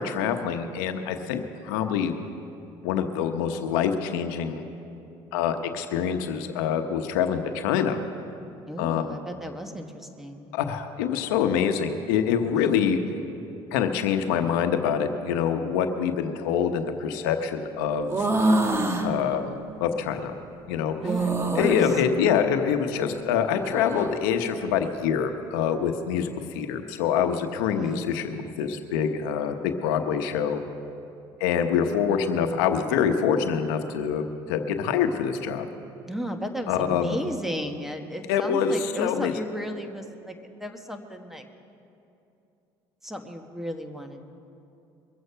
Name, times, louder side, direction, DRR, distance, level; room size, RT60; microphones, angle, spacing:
voice 1, 0.0-2.1 2.8-4.6 5.3-8.0 8.8-9.0 10.5-13.0 13.7-18.3 19.0-20.3 20.7-21.0 21.5-28.2 28.6-30.6 31.4-34.2 34.5-35.7 36.7-37.2 38.3-39.3, left 7 dB, 90° left, 7 dB, 0.9 m, -25 dB
voice 2, 8.7-10.5 12.5-12.9 21.0-21.9 27.7-28.2 36.1-40.3 40.6-41.5 43.0-44.2, equal, 5° right, 5 dB, 1.3 m, -34 dB
sound 1, 18.0-19.1 21.0-22.0 23.5-24.1, right 2 dB, 25° right, 1.6 m, -25 dB
22.5 x 8.0 x 5.6 m, 2.7 s
supercardioid pair, 85°, 11 cm